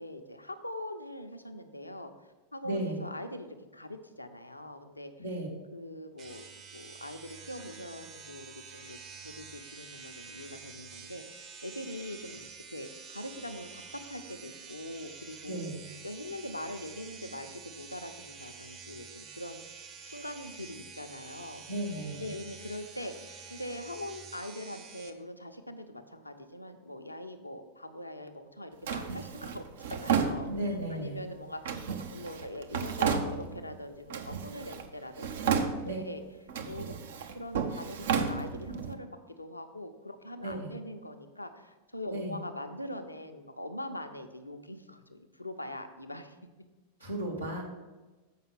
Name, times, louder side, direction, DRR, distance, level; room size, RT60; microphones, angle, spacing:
voice 1, 0.0-2.1 2.5-5.1 5.7-6.4 6.7-9.0 9.2-12.4 12.7-15.7 16.0-19.6 20.0-21.6 22.2-31.9 32.1-36.2 36.6-37.0 37.3-46.4, left 1 dB, 85° left, 7 dB, 0.6 m, -42 dB
voice 2, 2.6-3.0 5.2-5.5 15.4-15.8 21.7-22.3 30.5-31.2 35.9-36.0 40.4-40.7 42.1-42.4 47.0-47.6, right 1 dB, 80° right, -2 dB, 2.2 m, -35 dB
sound 1, 6.2-25.1, right 5 dB, 30° right, 1.0 m, -48 dB
Drawer open or close, 28.9-30.9 31.7-33.7 34.1-34.9 35.2-36.1 36.5-38.9, right 6 dB, 60° right, 0.8 m, -32 dB
7.4 x 5.5 x 5.8 m, 1.2 s
figure-of-eight pair, 90°, 0 cm